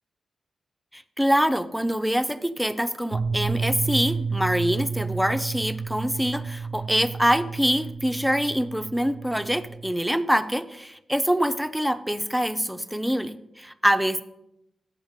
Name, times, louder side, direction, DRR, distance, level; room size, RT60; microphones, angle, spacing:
voice 1, 0.9-14.2, equal, ahead, 11 dB, 0.5 m, -25 dB
sound 1, 3.1-9.9, right 5 dB, 60° right, 0.5 m, -31 dB
7.8 x 6.4 x 5.1 m, 0.87 s
cardioid pair, 75°, 0 cm